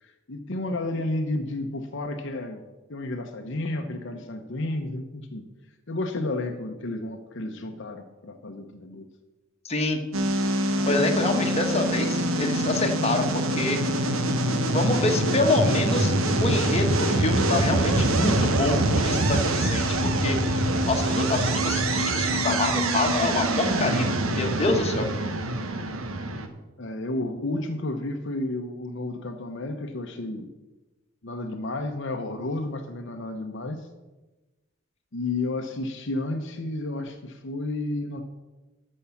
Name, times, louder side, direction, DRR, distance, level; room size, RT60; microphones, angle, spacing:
voice 1, 0.0-2.6 2.9-5.5 5.9-9.1 26.8-30.5 31.2-33.9 35.1-38.2, left 2 dB, 60° left, 4 dB, 0.9 m, -31 dB
voice 2, 9.6-10.0 10.9-13.8 14.7-16.1 16.4-20.6 20.9-24.1 24.4-25.1, left 2 dB, 30° left, 3 dB, 1.3 m, -26 dB
sound 1, 10.1-26.5, right 1 dB, 90° right, 1.2 m, -24 dB
12.5 x 5.5 x 7.1 m, 1.1 s
head